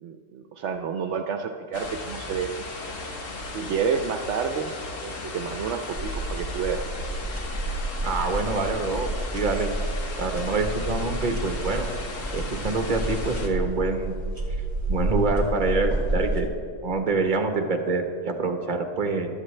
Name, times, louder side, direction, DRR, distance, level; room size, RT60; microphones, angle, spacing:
voice 1, 0.0-2.6 3.5-4.7 5.0-6.8, right 6 dB, 75° right, 6 dB, 0.9 m, -29 dB
sound 1, 1.7-13.5, left 3 dB, 90° left, 1.6 m, -36 dB
sound 2, 6.0-16.4, right 2 dB, 25° right, 1.9 m, -30 dB
voice 2, 8.0-9.7 10.2-11.9 12.3-14.2 14.9-16.5 16.8-19.3, right 3 dB, 40° right, 4 dB, 1.2 m, -26 dB
15.5 x 12.0 x 3.3 m, 2.4 s
omnidirectional pair, 1.3 m